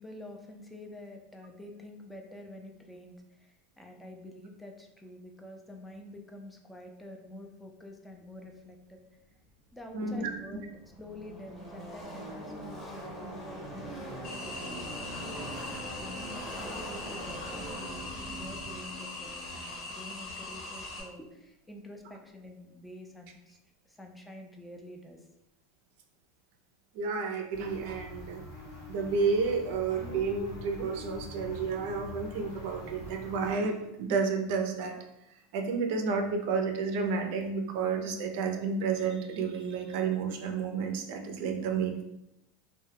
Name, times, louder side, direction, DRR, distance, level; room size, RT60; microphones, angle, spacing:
voice 1, 0.0-9.0 9.7-23.6 23.9-25.3, left 1 dB, 5° left, 2 dB, 0.4 m, -48 dB
Car passing by / Race car auto racing, 9.9-10.0 10.2-20.7, right 1 dB, 25° left, 0.9 m, -42 dB
voice 2, 9.9-10.3 26.9-28.4 28.9-35.0 35.5-42.0, right 5 dB, 65° right, 4 dB, 0.4 m, -31 dB
sound 1, 14.2-21.0, left 2 dB, 55° left, 1.0 m, -41 dB
sound 2, 27.5-33.6, left 2 dB, 90° left, 0.9 m, -44 dB
2.2 x 2.1 x 3.2 m, 0.86 s
supercardioid pair, 115°, 0 cm